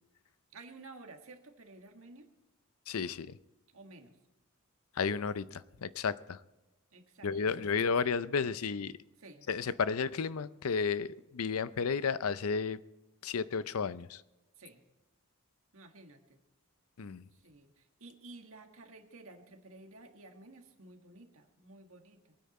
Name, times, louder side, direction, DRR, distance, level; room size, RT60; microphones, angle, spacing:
voice 1, 0.5-2.3 3.7-4.2 6.9-7.8 9.2-9.5 14.6-14.8 15.7-16.4 17.3-22.4, right 2 dB, 65° right, 5 dB, 1.7 m, -53 dB
voice 2, 2.9-3.4 5.0-6.4 7.2-9.0 9.5-12.8 13.2-14.2 17.0-17.3, left 5 dB, 75° left, 16 dB, 0.5 m, -32 dB
23.0 x 9.5 x 4.3 m, 1.0 s
head